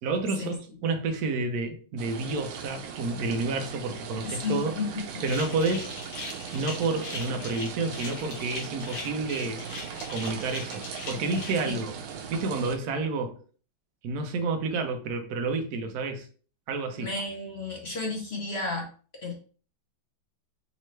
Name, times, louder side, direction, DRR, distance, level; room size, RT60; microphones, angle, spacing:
voice 1, 0.0-4.7 5.2-5.9 6.5-9.6 10.1-12.0 12.3-13.4 14.0-16.3 16.7-17.1, right 3 dB, 60° right, 1.0 m, -30 dB
sound 1, 2.0-12.8, right 7 dB, 85° right, 1.5 m, -39 dB
voice 2, 4.2-5.2 11.6-11.8 17.0-18.9 19.2-19.3, left 3 dB, 55° left, 0.7 m, -32 dB
sound 2, 5.2-11.6, left 3 dB, 85° left, 2.6 m, -39 dB
5.4 x 3.0 x 3.1 m
omnidirectional pair, 2.2 m